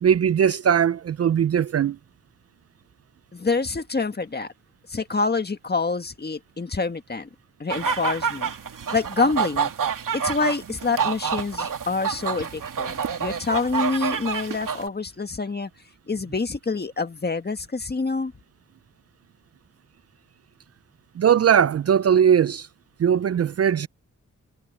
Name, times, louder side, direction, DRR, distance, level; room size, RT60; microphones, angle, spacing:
voice 1, 0.0-2.0 21.2-22.7 23.0-23.9, right 8 dB, 50° right, 0.4 m, -19 dB
voice 2, 3.3-4.5 4.9-7.3 7.6-8.5 8.9-9.7 10.1-15.7 16.1-18.3, left 4 dB, 30° left, 1.7 m, -26 dB
sound 1, 7.7-14.9, right 6 dB, 80° right, 2.8 m, -28 dB
wide cardioid pair, 95°, 32 cm